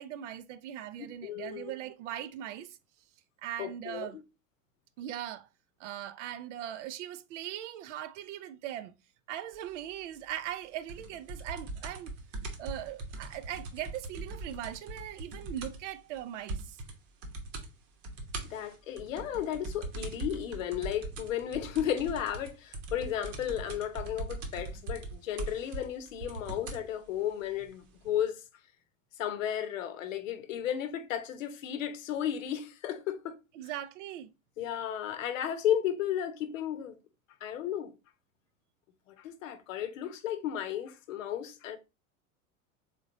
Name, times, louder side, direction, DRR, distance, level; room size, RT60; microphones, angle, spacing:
voice 1, 0.0-2.8 3.4-4.2 5.0-5.5 5.8-8.9 9.3-12.1 12.6-16.8 33.6-34.3, right 11 dB, 60° right, 0.6 m, -40 dB
voice 2, 1.2-1.7 3.6-4.1 18.4-28.4 29.2-33.4 34.6-36.9 37.4-37.9 39.1-41.8, left 10 dB, 70° left, 0.8 m, -34 dB
sound 1, 10.9-16.2 16.5-16.9 17.2-17.7 18.0-26.9 27.7-27.8, right 2 dB, 45° right, 1.0 m, -40 dB
3.8 x 3.6 x 2.6 m
figure-of-eight pair, 80°, 41 cm